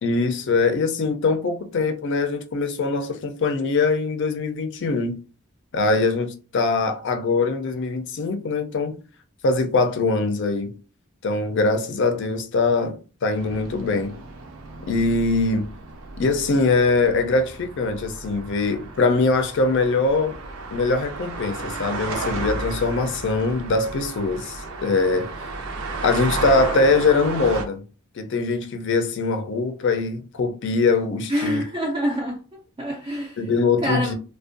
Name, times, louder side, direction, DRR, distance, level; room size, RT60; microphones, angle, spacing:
voice 1, 0.0-5.2 5.7-9.0 9.4-10.7 11.2-14.1 14.8-15.7 16.2-20.4 20.7-25.3 26.0-27.8 28.2-31.6 33.4-34.2, left 3 dB, 55° left, 0.4 m, -22 dB
sound 1, 13.4-27.6, right 3 dB, 85° right, 0.5 m, -33 dB
voice 2, 31.3-33.4 33.8-34.1, equal, 20° right, 0.3 m, -26 dB
2.5 x 2.1 x 2.5 m
head